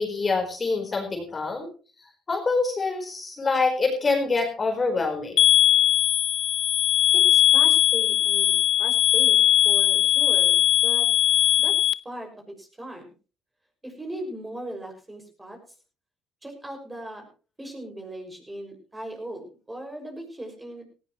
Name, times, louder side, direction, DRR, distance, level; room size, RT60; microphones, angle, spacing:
voice 1, 0.0-1.7 2.3-5.4, left 3 dB, 30° left, 3 dB, 4.2 m, -25 dB
sound 1, 5.4-11.9, left 11 dB, 60° left, 0.6 m, -19 dB
voice 2, 7.1-11.1 11.6-13.1 13.8-15.6 16.4-17.3 17.6-20.8, right 1 dB, 15° right, 3 dB, 6.0 m, -38 dB
18.0 x 15.5 x 3.1 m, 0.34 s
supercardioid pair, 80°, 0 cm